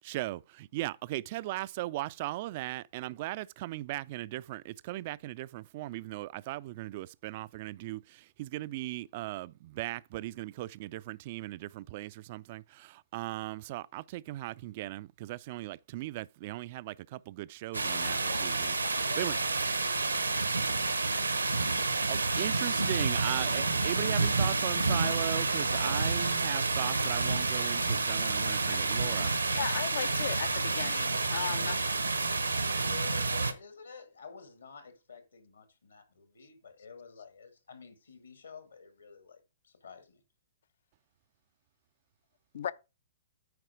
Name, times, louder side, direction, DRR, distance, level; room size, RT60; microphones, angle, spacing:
voice 1, 0.0-18.7 19.2-19.4 22.1-29.3, right 17 dB, 40° right, 0.3 m, -38 dB
sound 1, 17.7-33.5, right 3 dB, 80° right, 1.0 m, -29 dB
voice 2, 17.9-19.4 32.6-40.2, left 5 dB, 70° left, 2.1 m, -49 dB
voice 3, 29.5-31.8 42.5-42.7, left 9 dB, 55° left, 0.5 m, -36 dB
9.4 x 4.8 x 4.8 m
figure-of-eight pair, 115°, 0 cm